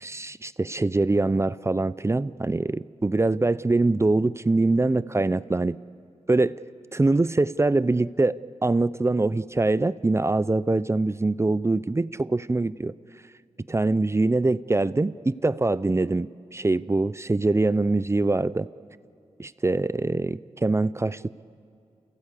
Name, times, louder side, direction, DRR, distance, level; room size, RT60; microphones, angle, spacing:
voice 1, 0.0-5.8 6.3-6.6 6.9-12.9 13.7-18.7 19.4-21.4, right 2 dB, 25° right, 17 dB, 0.5 m, -24 dB
29.5 x 16.0 x 8.4 m, 2.5 s
cardioid pair, 65°, 12 cm